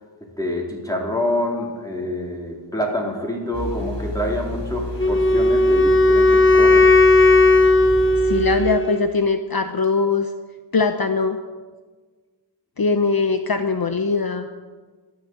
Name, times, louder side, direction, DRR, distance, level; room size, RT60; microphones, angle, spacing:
voice 1, 0.4-6.9, left 1 dB, 10° left, -1 dB, 3.7 m, -26 dB
sound 1, 3.5-8.6, left 2 dB, 75° left, 3.6 m, -30 dB
Wind instrument woodwind instrument, 5.0-9.1, left 2 dB, 30° left, 0.9 m, -15 dB
voice 2, 8.2-10.3 10.7-11.4 12.8-14.5, left 4 dB, 55° left, 8 dB, 0.8 m, -21 dB
12.5 x 12.0 x 7.8 m, 1.4 s
wide cardioid pair, 60°, 43 cm